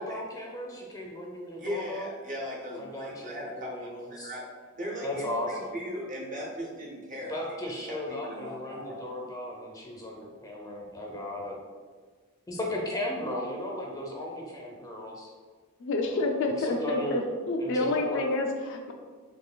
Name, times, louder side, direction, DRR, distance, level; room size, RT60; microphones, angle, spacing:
voice 1, 0.0-2.1 2.7-4.3 5.0-5.8 7.3-11.6 12.5-15.3 16.0-16.3 16.6-17.2 17.6-18.2, left 1 dB, 15° left, -1 dB, 0.6 m, -36 dB
voice 2, 1.6-4.4 4.7-7.6 7.9-9.0, equal, 35° right, -3 dB, 0.7 m, -38 dB
voice 3, 15.8-18.9, left 2 dB, 60° left, 3 dB, 0.4 m, -28 dB
4.1 x 3.1 x 2.2 m, 1.5 s
head